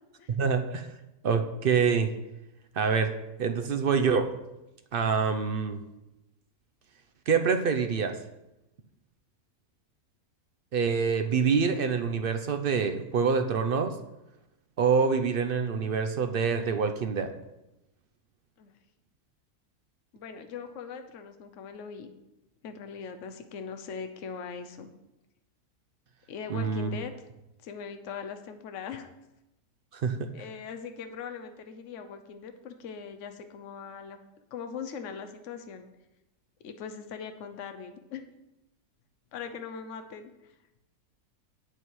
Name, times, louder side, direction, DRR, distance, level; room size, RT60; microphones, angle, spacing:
voice 1, 0.3-0.9 1.2-2.1 2.8-3.1 3.4-4.3 4.9-5.8 7.3-8.2 10.7-13.9 14.8-17.3 26.5-26.9 29.9-30.3, right 6 dB, 60° right, 8 dB, 0.5 m, -26 dB
voice 2, 20.1-22.1 22.6-24.9 26.3-27.1 27.6-29.1 30.3-34.2 34.5-35.9 36.6-38.2 39.3-40.5, left 6 dB, 60° left, 7 dB, 1.1 m, -40 dB
8.3 x 8.1 x 4.6 m, 0.95 s
omnidirectional pair, 1.6 m